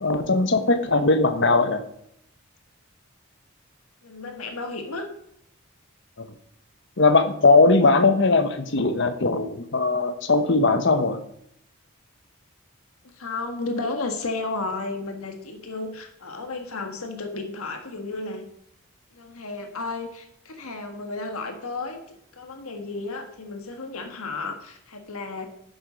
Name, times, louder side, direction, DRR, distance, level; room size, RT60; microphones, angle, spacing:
voice 1, 0.0-1.8 6.2-6.3 7.0-11.2, left 3 dB, 55° left, 10 dB, 1.1 m, -19 dB
voice 2, 4.0-5.1 8.6-9.0 13.2-18.5 19.1-25.5, left 3 dB, 80° left, 5 dB, 1.7 m, -33 dB
11.0 x 7.9 x 5.1 m, 0.73 s
head